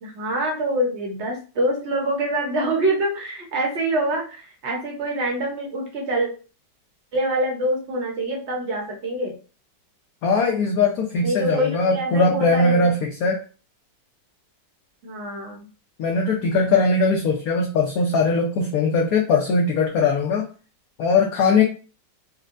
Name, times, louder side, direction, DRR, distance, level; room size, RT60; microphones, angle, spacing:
voice 1, 0.0-6.3 7.1-9.4 11.2-12.9 15.0-15.7, right 1 dB, 50° right, 1 dB, 0.8 m, -25 dB
voice 2, 10.2-13.4 16.0-20.5 21.0-21.6, left 3 dB, 70° left, 0 dB, 0.9 m, -20 dB
4.3 x 2.1 x 2.5 m, 0.35 s
omnidirectional pair, 2.0 m